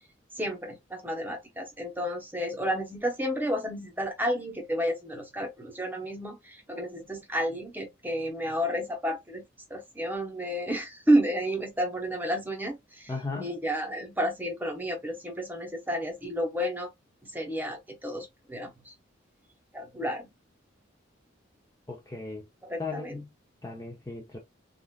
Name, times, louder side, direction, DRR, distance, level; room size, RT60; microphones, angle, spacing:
voice 1, 0.3-9.4 9.7-16.9 17.2-18.9 19.7-20.3 22.6-23.2, equal, 10° right, 0.9 m, -31 dB
voice 2, 13.1-13.5 21.9-22.4 22.8-23.3 23.6-24.4, left 3 dB, 15° left, 0.6 m, -36 dB
3.6 x 2.4 x 2.4 m
head